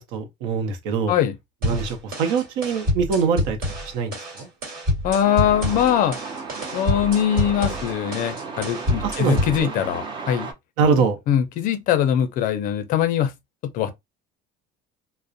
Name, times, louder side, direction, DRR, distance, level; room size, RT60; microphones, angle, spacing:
voice 1, 0.0-1.1 1.6-3.6 3.9-4.5 9.0-9.7 10.8-11.2, right 5 dB, 75° right, 0.7 m, -23 dB
sound 1, 1.6-9.6, left 1 dB, 50° right, 1.5 m, -27 dB
voice 2, 5.0-6.2 6.7-10.5 11.0-13.3 13.7-13.9, left 10 dB, 45° left, 0.4 m, -22 dB
Truck, 5.2-10.5, right 4 dB, 25° right, 0.4 m, -34 dB
2.4 x 2.0 x 2.5 m
cardioid pair, 165°, 20 cm